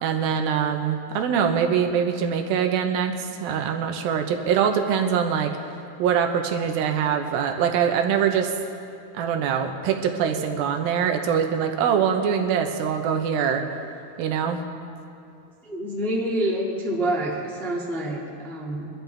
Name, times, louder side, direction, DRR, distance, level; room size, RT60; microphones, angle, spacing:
voice 1, 0.0-5.6 6.0-8.5 9.1-13.6 14.2-14.6, right 7 dB, 85° right, 4 dB, 2.7 m, -23 dB
voice 2, 15.6-18.9, right 1 dB, ahead, -4 dB, 0.6 m, -27 dB
23.0 x 12.5 x 3.4 m, 2.7 s
omnidirectional pair, 4.2 m